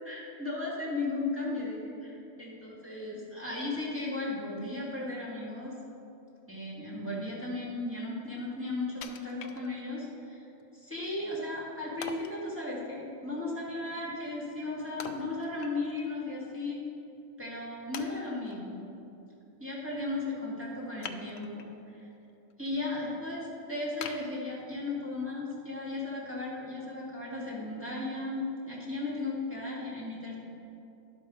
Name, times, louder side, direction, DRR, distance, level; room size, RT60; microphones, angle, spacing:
voice 1, 0.0-5.7 6.5-10.4 10.7-16.8 17.4-18.9 19.6-22.1 22.6-30.4, left 2 dB, 10° right, -8 dB, 2.3 m, -36 dB
Wood, 9.0-10.1 10.6-10.7 12.0-12.4 15.0-16.1 16.4-16.5 17.2-17.3 17.9-18.6 21.0-21.8 22.2-22.7 23.1-23.2 24.0-25.0 25.5-25.6, left 7 dB, 75° left, 0.9 m, -44 dB
11.5 x 5.2 x 6.3 m, 2.8 s
omnidirectional pair, 1.4 m